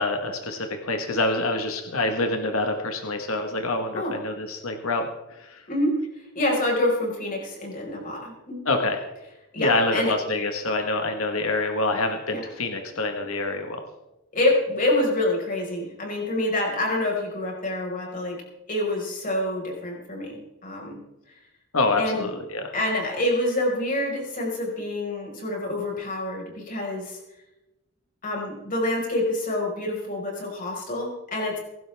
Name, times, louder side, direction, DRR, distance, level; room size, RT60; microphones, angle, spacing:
voice 1, 0.0-5.6 8.6-9.0 9.6-13.8 21.7-22.7, left 2 dB, 75° left, 5 dB, 1.5 m, -26 dB
voice 2, 6.3-8.7 9.5-10.1 12.3-12.4 14.3-18.4 18.7-21.0 22.0-22.3 22.7-27.2 28.2-31.6, left 1 dB, 40° left, -1 dB, 5.1 m, -27 dB
23.5 x 12.0 x 3.5 m, 0.96 s
head